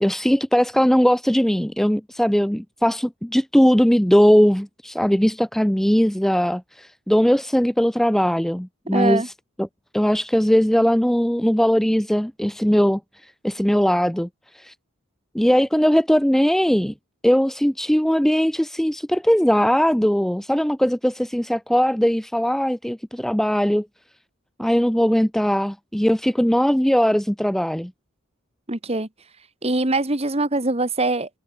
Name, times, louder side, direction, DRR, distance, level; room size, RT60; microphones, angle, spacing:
voice 1, 0.0-9.3 9.6-9.7 9.9-14.7 15.3-16.9 17.2-23.9 24.6-27.9, equal, ahead, 0.4 m, -19 dB
voice 2, 8.9-9.3 28.7-29.1 29.6-31.3, right 2 dB, 30° right, 1.7 m, -22 dB
head